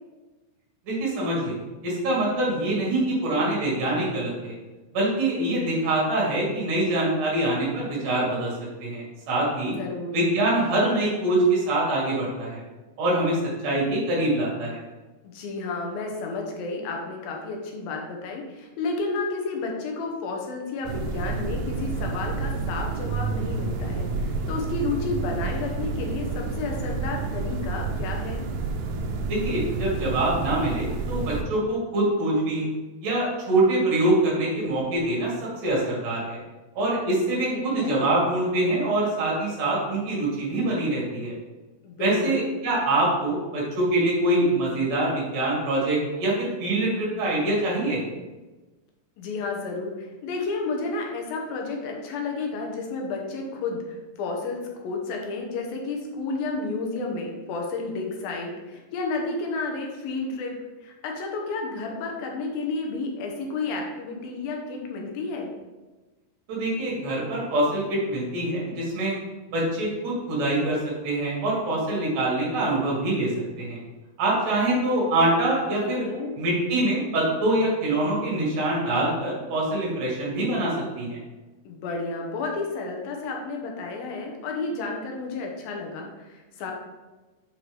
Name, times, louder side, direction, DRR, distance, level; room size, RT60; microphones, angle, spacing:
voice 1, 0.9-1.6 1.8-4.5 4.9-8.5 8.8-9.7 10.1-12.6 13.0-14.8 29.3-32.7 33.0-36.4 36.8-41.4 42.0-48.0 66.5-69.2 69.5-70.8 71.0-73.3 73.6-73.8 74.2-76.0 76.4-81.2, right 1 dB, 65° right, -5 dB, 3.6 m, -24 dB
voice 2, 9.8-10.2 15.2-28.5 37.5-38.0 41.8-42.4 49.2-60.5 60.8-65.5 75.8-76.4 81.7-86.7, left 3 dB, 85° left, 1 dB, 2.8 m, -31 dB
sound 1, 20.8-31.4, right 3 dB, 85° right, 1.6 m, -29 dB
7.7 x 4.5 x 3.4 m, 1.2 s
omnidirectional pair, 4.0 m